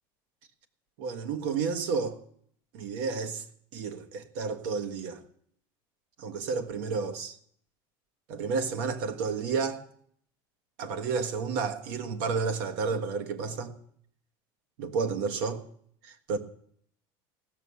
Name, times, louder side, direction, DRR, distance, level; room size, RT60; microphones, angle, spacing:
voice 1, 1.0-2.2 2.7-3.4 3.7-5.2 6.2-7.4 8.3-9.8 10.8-13.7 14.8-15.6 16.0-16.4, right 5 dB, 80° right, 1.4 m, -31 dB
16.0 x 6.4 x 6.9 m
supercardioid pair, 130°, 12 cm